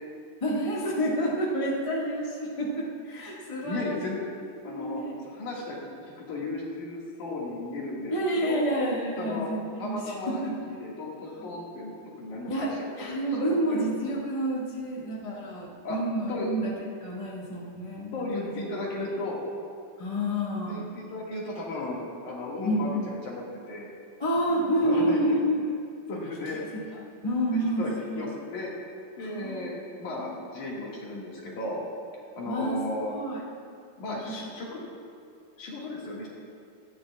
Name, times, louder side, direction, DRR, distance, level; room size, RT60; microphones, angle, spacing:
voice 1, 0.4-4.0 4.7-5.2 8.1-10.5 11.4-11.5 12.5-12.7 13.0-16.7 17.0-18.5 20.0-20.8 22.6-23.1 24.2-25.6 27.2-28.3 29.2-29.7 30.0-30.3 32.4-32.8 33.1-33.4 34.1-34.3, equal, 35° left, -6 dB, 0.5 m, -29 dB
voice 2, 3.6-4.3 4.6-8.6 9.2-9.5 9.8-13.1 13.4-13.8 15.8-16.0 16.3-16.5 18.1-19.4 20.7-23.9 24.5-25.4 26.1-26.9 27.8-28.7 29.2-31.8 32.4-33.1 34.0-34.9 35.6-36.3, left 2 dB, 60° left, -4 dB, 3.2 m, -35 dB
17.5 x 13.0 x 2.4 m, 2.3 s
omnidirectional pair, 4.2 m